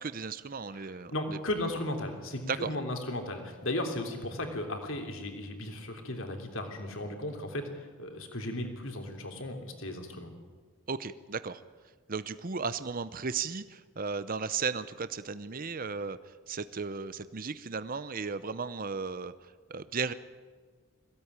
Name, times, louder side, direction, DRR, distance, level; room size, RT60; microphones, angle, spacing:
voice 1, 0.0-1.4 2.5-2.7 10.9-11.6 12.1-20.1, right 5 dB, 40° right, 13 dB, 0.7 m, -35 dB
voice 2, 1.1-10.3, left 1 dB, 60° left, 4 dB, 3.3 m, -35 dB
21.5 x 16.5 x 9.7 m, 1.5 s
head